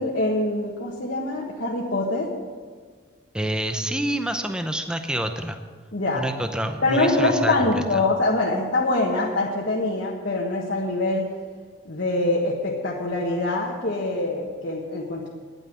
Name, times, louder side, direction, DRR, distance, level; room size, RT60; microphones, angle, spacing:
voice 1, 0.0-2.3 5.9-6.3 6.8-11.3 11.8-15.3, left 2 dB, 60° left, -4 dB, 1.5 m, -24 dB
voice 2, 3.3-5.6 6.2-8.0, right 1 dB, 5° right, 7 dB, 0.6 m, -27 dB
10.5 x 9.2 x 8.0 m, 1.5 s
head